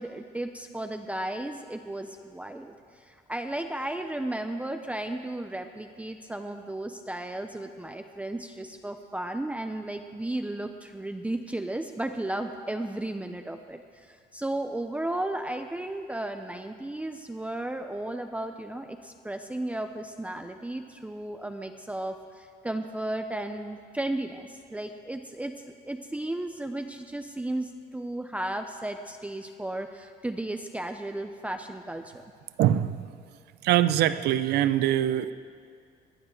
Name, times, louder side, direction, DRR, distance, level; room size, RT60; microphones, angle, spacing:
voice 1, 0.0-32.2, right 1 dB, 10° right, 6 dB, 0.7 m, -34 dB
voice 2, 32.6-33.1 33.6-35.3, right 12 dB, 75° right, 14 dB, 0.7 m, -23 dB
22.5 x 8.6 x 6.6 m, 2.2 s
cardioid pair, 110°, 17 cm